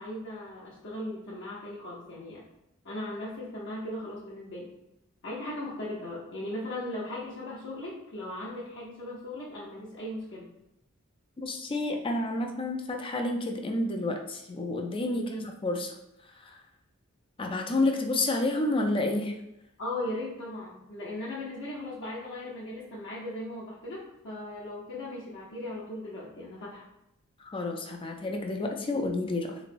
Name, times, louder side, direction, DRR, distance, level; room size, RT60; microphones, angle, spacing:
voice 1, 0.0-2.4 2.8-4.7 5.2-10.5 15.1-15.4 19.8-26.8, left 1 dB, 55° left, -6 dB, 0.7 m, -38 dB
voice 2, 11.4-16.0 16.4-16.6 17.4-19.3 27.4-29.6, left 2 dB, 25° left, 3 dB, 0.4 m, -30 dB
3.7 x 3.1 x 2.5 m, 0.85 s
head